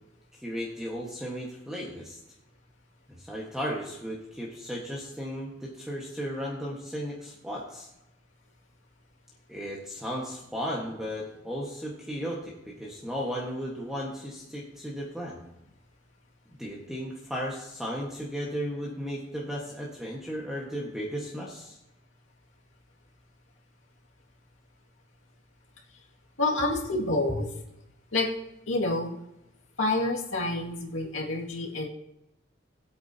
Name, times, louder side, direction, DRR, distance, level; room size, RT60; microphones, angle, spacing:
voice 1, 0.4-2.2 3.1-7.9 9.5-15.4 16.6-21.8 27.3-27.4, equal, 5° right, -4 dB, 1.5 m, -35 dB
voice 2, 26.4-27.5 28.1-28.3 28.7-29.1 29.8-31.9, left 2 dB, 90° left, -1 dB, 2.2 m, -28 dB
20.5 x 8.4 x 2.9 m, 0.89 s
head